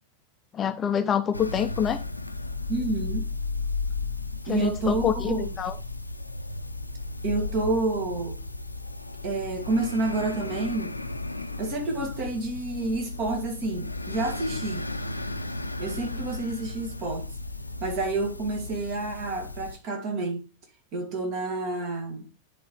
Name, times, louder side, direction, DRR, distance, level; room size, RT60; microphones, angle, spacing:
voice 1, 0.5-2.0 4.5-5.7, left 8 dB, 25° left, 0.5 m, -26 dB
sound 1, 1.3-19.8, left 3 dB, 85° left, 0.5 m, -34 dB
voice 2, 2.7-3.2 4.5-5.5 7.2-8.4 9.2-10.9 11.6-14.9 15.8-17.3 17.8-20.5 20.9-22.3, right 2 dB, 40° right, 1.7 m, -29 dB
11.0 x 3.7 x 3.1 m
figure-of-eight pair, 90°, 0 cm